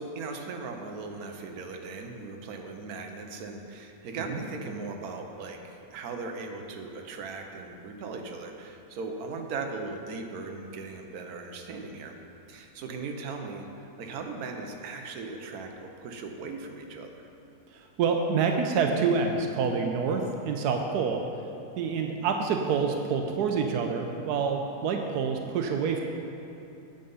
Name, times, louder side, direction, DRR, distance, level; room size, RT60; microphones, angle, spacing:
voice 1, 0.0-12.1 12.5-17.3 22.2-22.3, right 4 dB, 70° right, 3 dB, 1.3 m, -38 dB
voice 2, 17.7-21.2 21.8-26.0, right 5 dB, 90° right, 3 dB, 1.2 m, -27 dB
9.1 x 7.8 x 5.5 m, 2.8 s
omnidirectional pair, 1.6 m